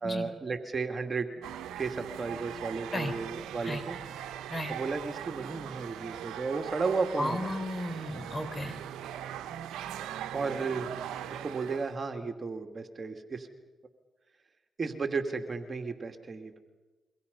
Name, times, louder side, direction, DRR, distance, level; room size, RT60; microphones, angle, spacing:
voice 1, 0.0-1.4 1.8-4.0 4.7-7.5 10.3-10.9 11.3-13.5 14.8-16.6, right 4 dB, 45° right, 5 dB, 2.6 m, -34 dB
sound 1, 1.4-12.0, right 10 dB, 85° right, 1.0 m, -40 dB
voice 2, 7.2-8.8, left 1 dB, 25° left, 9 dB, 3.8 m, -34 dB
28.5 x 24.0 x 5.5 m, 1.2 s
supercardioid pair, 50°, 0 cm